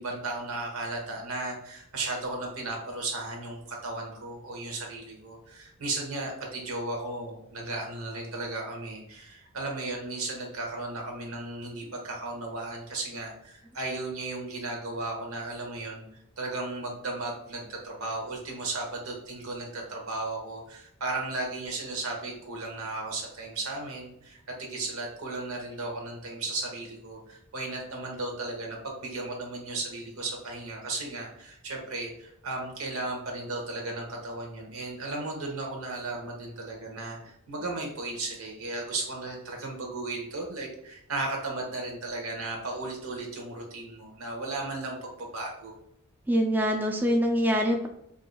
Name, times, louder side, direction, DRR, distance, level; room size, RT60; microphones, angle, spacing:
voice 1, 0.0-16.0 16.4-45.7, right 2 dB, 90° right, 1 dB, 1.0 m, -35 dB
voice 2, 46.3-47.9, equal, 10° right, 1 dB, 0.3 m, -24 dB
4.6 x 2.6 x 2.2 m, 0.74 s
head